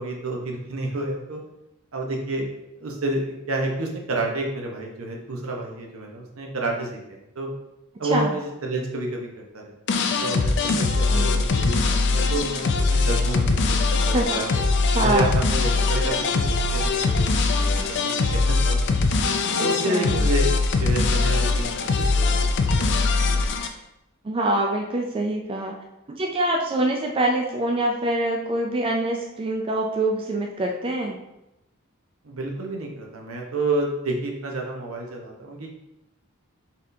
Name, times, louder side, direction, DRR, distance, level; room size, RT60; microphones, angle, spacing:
voice 1, 0.0-1.4 1.9-2.5 2.8-7.5 8.0-14.6 15.0-19.0 19.6-20.5 20.8-23.5 32.2-35.8, right 2 dB, 75° right, 0 dB, 0.8 m, -30 dB
sound 1, 9.9-23.7, left 3 dB, 55° left, 0.4 m, -22 dB
voice 2, 11.0-11.4 14.1-14.4 14.9-15.3 19.6-20.3 24.2-25.7 26.1-31.2, right 1 dB, 25° right, 1 dB, 0.3 m, -25 dB
4.1 x 3.6 x 2.6 m, 0.88 s
head